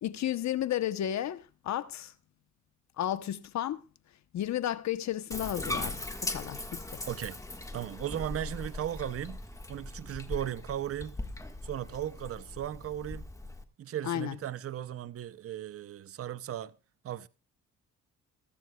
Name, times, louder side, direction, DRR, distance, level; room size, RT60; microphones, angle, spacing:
voice 1, 0.0-2.1 3.0-3.8 4.3-7.0 14.0-14.4, left 12 dB, 65° left, 1.0 m, -33 dB
Bathtub (filling or washing), 5.3-13.6, left 1 dB, 10° left, 1.6 m, -39 dB
voice 2, 7.1-7.4 7.7-9.4 9.7-11.2 11.6-13.3 13.8-16.7 17.0-17.3, right 11 dB, 50° right, 0.7 m, -36 dB
22.0 x 12.5 x 2.3 m
cardioid pair, 90°, 30 cm